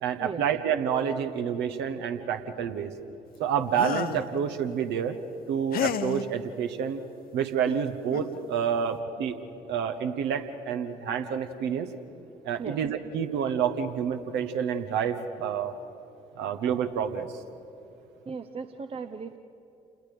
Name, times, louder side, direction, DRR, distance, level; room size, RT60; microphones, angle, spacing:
voice 1, 0.0-2.9 3.4-5.2 5.5-7.0 7.3-9.4 9.7-11.9 12.4-15.7 16.3-17.3, right 8 dB, 60° right, 8 dB, 1.3 m, -28 dB
sound 1, 3.7-4.3 5.7-6.3 7.7-7.8 8.1-8.4, left 9 dB, 50° left, 0.9 m, -30 dB
voice 2, 18.3-19.4, right 5 dB, 30° right, 8 dB, 0.9 m, -37 dB
29.0 x 20.5 x 5.2 m, 2.9 s
figure-of-eight pair, 45°, 20 cm